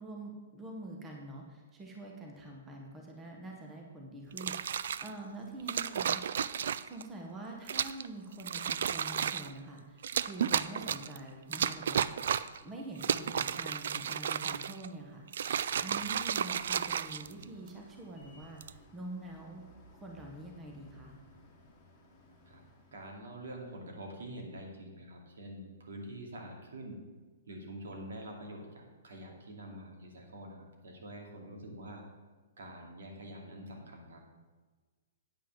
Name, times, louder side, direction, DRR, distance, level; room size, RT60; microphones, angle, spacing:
voice 1, 0.0-15.3 15.8-19.7 19.9-21.1, right 2 dB, 10° right, 0 dB, 1.0 m, -46 dB
sound 1, 4.3-5.1 5.7-7.0 7.7-8.1 8.4-9.5 10.0-11.2 11.5-12.6 13.0-14.9 15.3-17.7 18.4-18.8, right 8 dB, 60° right, 0.3 m, -33 dB
sound 2, 16.0-24.3, left 2 dB, 10° left, 1.9 m, -59 dB
voice 2, 22.9-27.0 27.5-32.0 32.6-34.2, right 1 dB, 80° right, 1 dB, 2.5 m, -46 dB
8.8 x 5.5 x 7.4 m, 1.3 s
hypercardioid pair, 170°, 0 cm